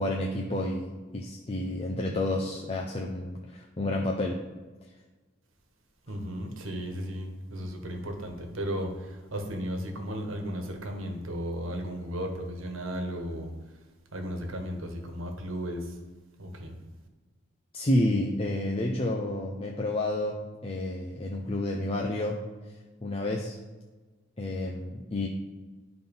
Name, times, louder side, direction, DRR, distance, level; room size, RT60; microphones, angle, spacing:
voice 1, 0.0-4.4 17.7-22.4 23.0-23.6 24.4-25.3, left 1 dB, 30° left, 0 dB, 0.6 m, -30 dB
voice 2, 6.1-13.5 14.1-16.0 16.4-16.8, equal, 80° right, 4 dB, 1.4 m, -35 dB
10.5 x 4.0 x 5.4 m, 1.3 s
head